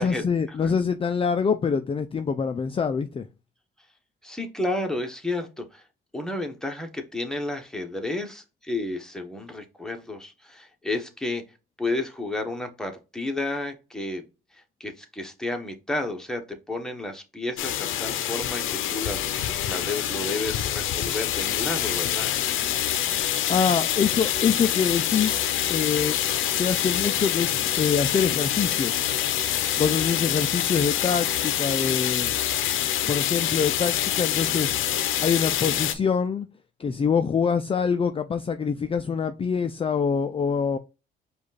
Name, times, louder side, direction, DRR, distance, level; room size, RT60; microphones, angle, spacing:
voice 1, 0.0-3.3 23.3-25.4 25.7-26.2 26.4-29.1 29.8-32.3 33.1-34.8 35.2-36.5 36.8-40.8, left 6 dB, 30° left, 0.4 m, -25 dB
voice 2, 4.2-5.8 6.1-11.4 11.8-14.2 14.5-22.4, left 2 dB, 5° left, 1.1 m, -32 dB
sound 1, 17.6-35.9, left 11 dB, 85° left, 0.6 m, -26 dB
4.9 x 2.4 x 4.0 m
cardioid pair, 90°, 20 cm